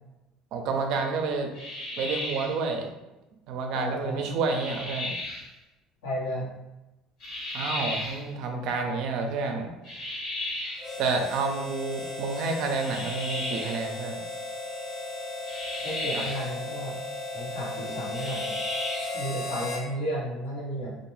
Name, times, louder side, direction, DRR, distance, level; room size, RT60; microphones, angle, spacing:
voice 1, 0.5-1.5 2.0-2.9 3.5-5.1 7.5-9.7 11.0-14.2 16.1-16.2, right 4 dB, 70° right, 4 dB, 0.4 m, -29 dB
sound 1, 1.5-2.6 4.5-5.5 7.2-8.2 9.8-10.9 12.8-13.8 15.5-16.5 18.1-19.2, left 1 dB, 70° left, 1.4 m, -34 dB
voice 2, 3.7-4.3 6.0-6.5 15.8-16.9 17.3-18.6 19.1-21.0, equal, 85° left, -6 dB, 1.0 m, -33 dB
Harmonica, 10.8-19.9, left 2 dB, 40° left, 0.7 m, -36 dB
2.4 x 2.2 x 3.0 m, 0.99 s
supercardioid pair, 90°, 0 cm